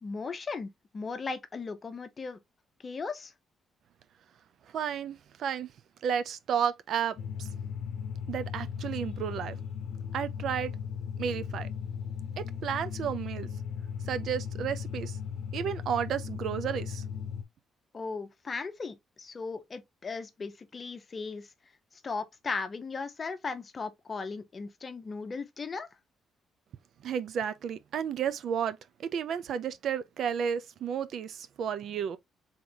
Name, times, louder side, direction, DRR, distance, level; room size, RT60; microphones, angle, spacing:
voice 1, 0.0-2.4 2.8-3.3 17.9-21.5 22.0-25.9, left 4 dB, 35° left, 0.8 m, -37 dB
voice 2, 4.7-5.7 6.0-7.5 8.3-9.6 10.1-10.7 11.2-11.7 12.4-13.5 14.1-15.2 15.5-17.0 27.0-32.2, right 8 dB, 70° right, 0.5 m, -32 dB
sound 1, 7.2-17.4, left 7 dB, 70° left, 0.7 m, -37 dB
3.8 x 3.6 x 2.8 m
cardioid pair, 90°, 0 cm